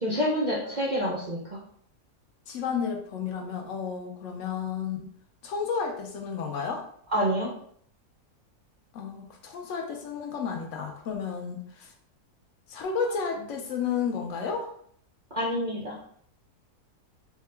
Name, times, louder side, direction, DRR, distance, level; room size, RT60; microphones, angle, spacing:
voice 1, 0.0-1.6 7.1-7.5 15.3-16.0, equal, 70° right, -5 dB, 0.4 m, -27 dB
voice 2, 2.5-5.1 5.4-6.9 8.9-11.9 12.7-14.7, left 6 dB, 70° left, 3 dB, 0.7 m, -32 dB
3.6 x 2.2 x 3.3 m, 0.63 s
omnidirectional pair, 1.7 m